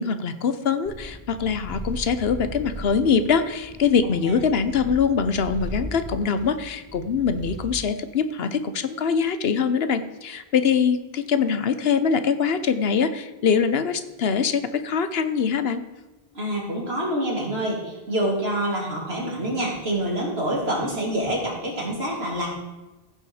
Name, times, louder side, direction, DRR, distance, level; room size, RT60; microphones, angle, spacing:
voice 1, 0.0-15.8, left 6 dB, 75° left, 11 dB, 1.1 m, -23 dB
Purr, 0.9-7.8, equal, 15° right, 1.3 m, -37 dB
voice 2, 16.3-22.6, right 1 dB, 80° right, -2 dB, 3.4 m, -26 dB
15.0 x 6.9 x 4.9 m, 1.1 s
omnidirectional pair, 1.0 m